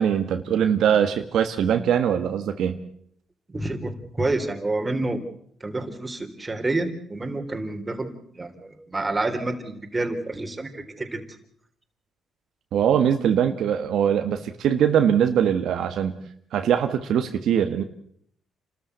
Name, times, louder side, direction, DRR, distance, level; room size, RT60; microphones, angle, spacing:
voice 1, 0.0-2.8 12.7-16.2 16.5-17.8, right 8 dB, 75° right, 7 dB, 1.5 m, -22 dB
voice 2, 3.5-5.2 5.6-11.3, right 2 dB, 20° right, 5 dB, 3.5 m, -28 dB
28.5 x 13.5 x 8.1 m, 0.66 s
cardioid pair, 90°, 0 cm